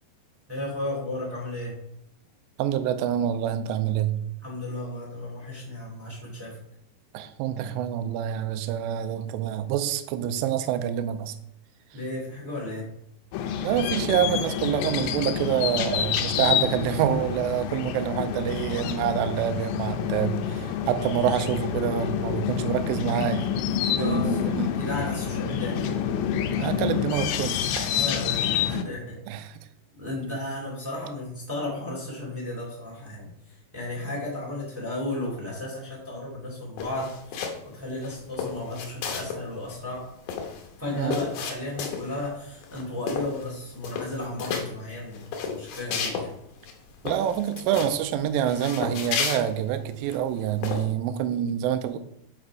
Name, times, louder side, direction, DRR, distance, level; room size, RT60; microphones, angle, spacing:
voice 1, 0.5-1.8 4.4-6.6 11.9-12.9 23.9-25.9 27.9-29.2 29.9-40.1 40.8-46.3, left 1 dB, 10° right, -5 dB, 0.8 m, -34 dB
voice 2, 2.6-4.2 7.1-11.3 13.6-23.5 24.0-24.7 26.6-27.9 29.3-29.6 41.0-41.2 47.0-52.0, right 10 dB, 90° right, 9 dB, 2.0 m, -27 dB
sound 1, 13.3-28.8, left 8 dB, 90° left, 2.7 m, -28 dB
sound 2, 36.8-37.7 38.0-39.4 39.7-39.8 40.0-42.2 42.6-42.8 43.1-43.5 43.8-44.7 45.1-46.3 46.6-46.7 47.1-48.0 48.5-50.2 50.6-50.8, left 6 dB, 75° left, 2.5 m, -32 dB
7.7 x 4.2 x 4.7 m, 0.75 s
omnidirectional pair, 4.8 m